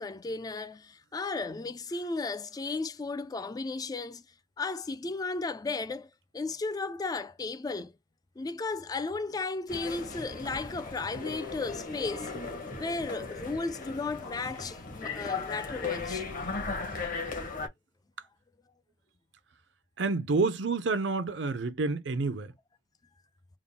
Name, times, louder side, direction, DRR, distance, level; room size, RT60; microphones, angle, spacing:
voice 1, 0.0-4.2 4.6-7.9 8.4-12.3 12.7-16.2, left 3 dB, 20° left, 0.3 m, -35 dB
sound 1, 9.7-17.7, left 4 dB, 50° left, 1.2 m, -37 dB
voice 2, 20.0-22.5, right 3 dB, 70° right, 0.6 m, -28 dB
3.6 x 2.1 x 3.7 m
head